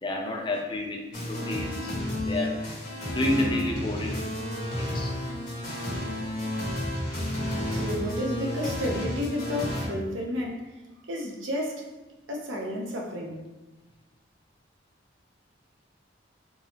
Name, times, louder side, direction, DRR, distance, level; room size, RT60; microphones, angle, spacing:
voice 1, 0.0-1.9 2.2-2.6 3.1-4.3 4.7-5.1 8.6-8.8, left 2 dB, 25° left, 1 dB, 0.5 m, -30 dB
sound 1, 1.1-9.9, left 1 dB, 40° left, 1.4 m, -31 dB
voice 2, 7.5-10.6 11.1-11.8 12.3-13.4, left 1 dB, 85° right, 0 dB, 0.7 m, -32 dB
3.8 x 2.9 x 2.8 m, 1.1 s
head